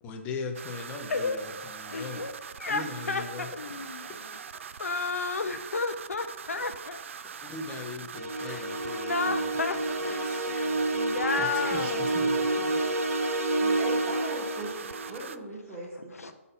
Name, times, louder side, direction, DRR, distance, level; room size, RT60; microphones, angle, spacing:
voice 1, 0.0-3.5 7.4-9.5 11.4-12.4 13.6-13.8, left 4 dB, 15° left, 3 dB, 0.7 m, -40 dB
sound 1, 0.5-15.4, right 7 dB, 60° right, 0.3 m, -42 dB
voice 2, 1.9-2.3 2.6-4.1 4.8-7.0 8.4-8.6 8.9-9.8 10.0-10.5 10.9-12.3 16.2-16.3, left 4 dB, 85° left, 8 dB, 0.8 m, -32 dB
sound 2, 8.1-15.1, right 2 dB, 80° right, 1.0 m, -29 dB
Speech, 9.5-13.4, right 3 dB, 45° right, 1.2 m, -46 dB
voice 3, 13.8-16.3, right 1 dB, 20° right, -3 dB, 1.3 m, -39 dB
5.4 x 4.2 x 5.5 m, 1.1 s
hypercardioid pair, 150°, 8 cm